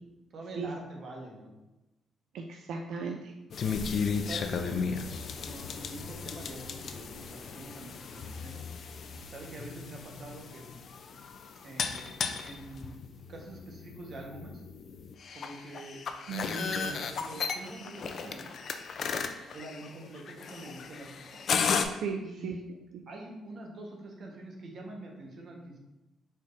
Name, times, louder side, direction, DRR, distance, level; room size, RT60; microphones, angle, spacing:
voice 1, 0.3-1.5 4.2-4.9 5.4-8.6 9.3-10.8 11.2-11.3 11.6-13.0 13.3-14.6 15.3-16.0 16.6-18.5 19.5-21.4 22.2-22.6 23.1-25.8, right 2 dB, 45° right, 0 dB, 1.0 m, -45 dB
voice 2, 2.3-3.3 16.3-16.7 21.8-22.6, right 5 dB, 75° right, 2 dB, 0.3 m, -36 dB
sound 1, 3.5-21.9, left 5 dB, 50° left, 0.3 m, -35 dB
4.7 x 4.2 x 2.5 m, 0.99 s
cardioid pair, 140°, 0 cm